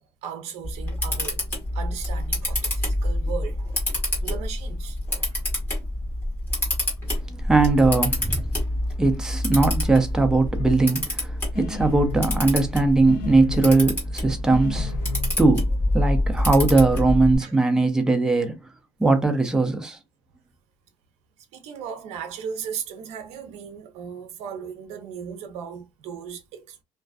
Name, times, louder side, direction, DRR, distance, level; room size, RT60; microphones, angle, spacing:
voice 1, 0.0-1.4 1.7-3.8 4.2-5.0 5.3-5.4 17.4-17.5 21.5-26.8, right 7 dB, 65° right, 0.6 m, -36 dB
Camera, 0.6-17.4, left 1 dB, 15° left, 1.4 m, -27 dB
voice 2, 7.3-8.5 9.0-15.0 15.4-18.6 19.0-20.0, right 3 dB, 5° right, 0.4 m, -20 dB
sound 1, 10.6-10.8 11.6-12.5 13.1-13.8 14.5-15.3, left 6 dB, 75° left, 0.5 m, -34 dB
2.4 x 2.3 x 2.3 m
cardioid pair, 155°, 12 cm